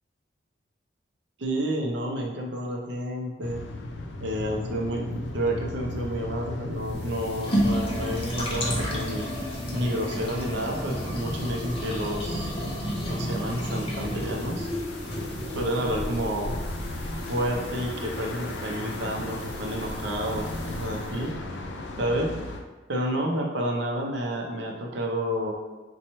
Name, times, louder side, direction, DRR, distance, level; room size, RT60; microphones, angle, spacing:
voice 1, 1.4-3.6 4.2-9.3 9.7-12.5 13.0-14.7 15.5-16.5 17.3-21.3 22.0-22.3 22.9-25.5, equal, 70° right, 1 dB, 0.6 m, -30 dB
sound 1, 3.4-22.6, left 1 dB, 75° left, 0.4 m, -37 dB
sound 2, 6.9-21.2, equal, 30° left, 0.6 m, -32 dB
3.0 x 2.3 x 4.1 m, 1.3 s
head